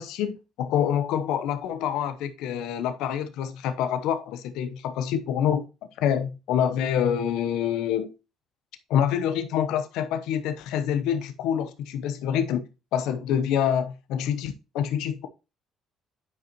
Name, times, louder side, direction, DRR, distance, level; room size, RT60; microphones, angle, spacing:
voice 1, 0.0-5.6 6.0-8.1 8.9-15.3, left 9 dB, 75° left, 0.9 m, -26 dB
9.8 x 5.1 x 3.0 m
supercardioid pair, 65°, 0 cm